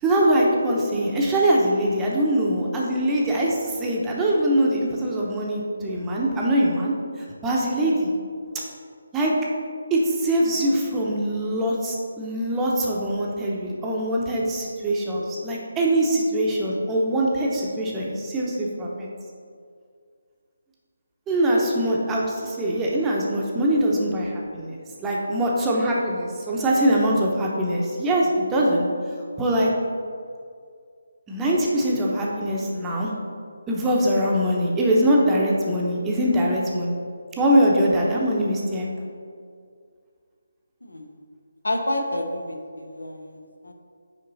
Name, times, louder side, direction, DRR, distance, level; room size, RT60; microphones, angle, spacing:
voice 1, 0.0-6.9 7.4-8.1 8.5-8.6 9.1-9.3 9.9-19.1 21.3-28.9 29.4-29.7 31.3-33.1 33.7-37.0 37.4-38.9, right 1 dB, 10° right, -3 dB, 0.8 m, -22 dB
voice 2, 41.6-43.7, left 1 dB, 80° left, 3 dB, 0.9 m, -29 dB
5.5 x 5.3 x 4.0 m, 2.2 s
figure-of-eight pair, 150°, 0 cm